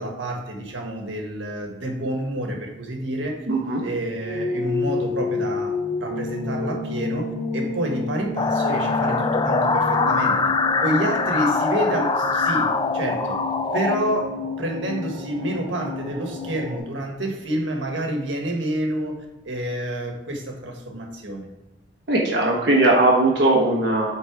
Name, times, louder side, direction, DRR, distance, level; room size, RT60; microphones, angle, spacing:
voice 1, 0.0-3.5 3.8-5.7 6.0-7.3 7.5-10.4 10.8-13.3 13.7-21.5, right 1 dB, 90° right, 2 dB, 1.5 m, -28 dB
voice 2, 3.5-3.8 22.1-24.1, right 2 dB, 65° right, -2 dB, 1.3 m, -19 dB
sound 1, 4.2-16.8, left 3 dB, 30° right, 2.5 m, -30 dB
sound 2, 8.4-14.0, left 4 dB, 25° left, 0.4 m, -23 dB
8.6 x 4.0 x 4.7 m, 1.1 s
head